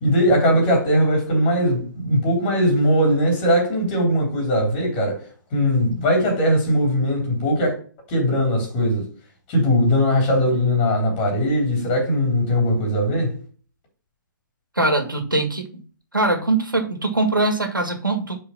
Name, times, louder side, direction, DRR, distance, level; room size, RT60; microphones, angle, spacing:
voice 1, 0.0-5.2 5.5-7.7 8.1-9.1 9.5-13.3, equal, 30° left, 3.2 m, -20 dB
voice 2, 14.8-15.7 16.1-18.4, right 2 dB, 85° right, 1.8 m, -22 dB
5.1 x 4.6 x 5.7 m
figure-of-eight pair, 125°, 11 cm